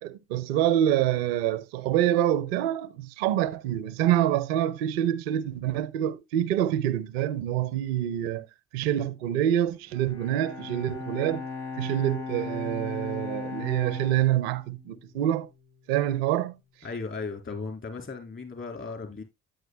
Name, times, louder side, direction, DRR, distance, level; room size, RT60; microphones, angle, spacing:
voice 1, 0.0-8.4 8.7-11.4 11.8-15.5 15.9-16.6, right 12 dB, 90° right, 0.6 m, -26 dB
Bowed string instrument, 9.9-15.3, left 4 dB, 70° left, 4.2 m, -37 dB
voice 2, 16.8-19.2, left 4 dB, 40° left, 3.7 m, -36 dB
9.5 x 9.1 x 2.2 m
hypercardioid pair, 45°, 30 cm